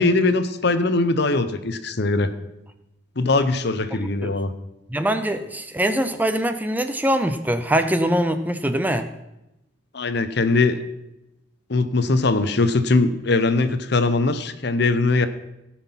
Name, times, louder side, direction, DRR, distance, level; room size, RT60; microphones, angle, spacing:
voice 1, 0.0-2.3 3.2-4.5 9.9-10.8 11.7-15.3, left 3 dB, 55° left, 11 dB, 0.8 m, -21 dB
voice 2, 4.9-9.1, right 1 dB, 10° right, 9 dB, 0.5 m, -23 dB
17.0 x 5.9 x 5.8 m, 0.93 s
head